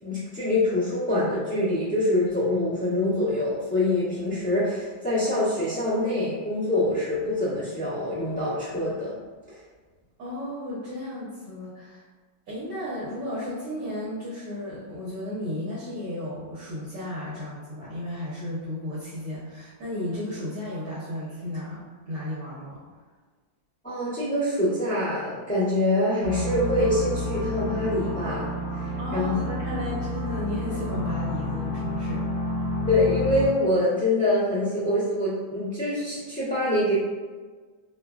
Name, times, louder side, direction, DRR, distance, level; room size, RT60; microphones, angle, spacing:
voice 1, 0.0-9.1 9.5-9.6 23.8-28.5 28.8-29.4 32.9-36.9, left 1 dB, 10° left, -13 dB, 0.5 m, -25 dB
voice 2, 10.2-12.0 12.5-22.8 29.0-32.3, left 1 dB, 65° right, -9 dB, 1.2 m, -34 dB
sound 1, 26.2-33.5, equal, 60° left, 1.0 m, -30 dB
3.1 x 2.2 x 2.3 m, 1.4 s
omnidirectional pair, 2.1 m